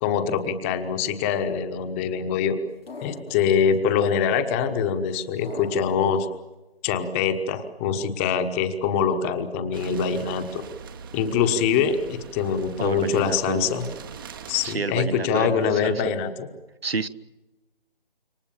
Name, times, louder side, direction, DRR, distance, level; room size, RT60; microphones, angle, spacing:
voice 1, 0.0-2.6 3.0-6.3 6.8-10.6 11.1-13.9 14.5-16.5, left 7 dB, 15° left, 8 dB, 1.2 m, -24 dB
sound 1, 2.9-3.8 5.4-6.4, left 3 dB, 80° left, 2.1 m, -40 dB
sound 2, 9.7-14.8, right 7 dB, 20° right, 1.1 m, -42 dB
voice 2, 12.8-13.7 14.6-16.0 16.8-17.1, right 4 dB, 80° right, 14 dB, 1.4 m, -29 dB
27.5 x 24.0 x 7.1 m, 1.1 s
figure-of-eight pair, 155°, 30 cm